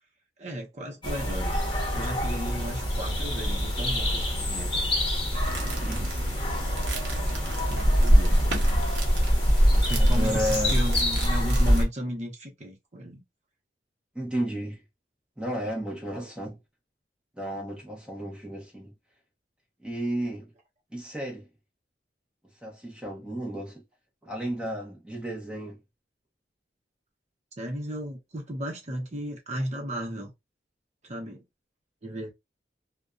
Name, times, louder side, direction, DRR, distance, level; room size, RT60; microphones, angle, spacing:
voice 1, 0.4-4.9 5.6-5.9 7.7-8.4 9.7-13.2 27.6-30.3 31.0-31.4 32.0-32.3, equal, 40° right, 0.8 m, -35 dB
sound 1, 1.0-11.8, equal, 30° left, 1.0 m, -24 dB
sound 2, 5.4-11.9, right 3 dB, 75° right, 0.7 m, -38 dB
voice 2, 5.7-6.2 10.0-10.7 14.1-14.8 15.4-16.6 17.4-18.9 19.8-20.5 20.9-21.5 22.6-23.8 24.2-25.8, equal, 5° right, 0.8 m, -33 dB
2.5 x 2.2 x 2.3 m
head